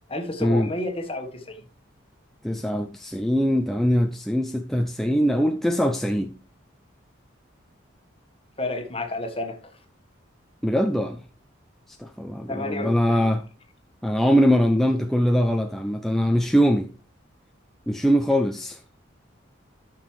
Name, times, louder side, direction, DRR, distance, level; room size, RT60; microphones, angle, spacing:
voice 1, 0.1-1.6 8.6-9.6 12.5-13.3, left 2 dB, 30° left, 1.4 m, -30 dB
voice 2, 2.4-6.3 10.6-11.2 11.9-13.4 14.0-16.9 17.9-18.8, equal, ahead, 0.4 m, -22 dB
12.5 x 6.0 x 3.2 m
head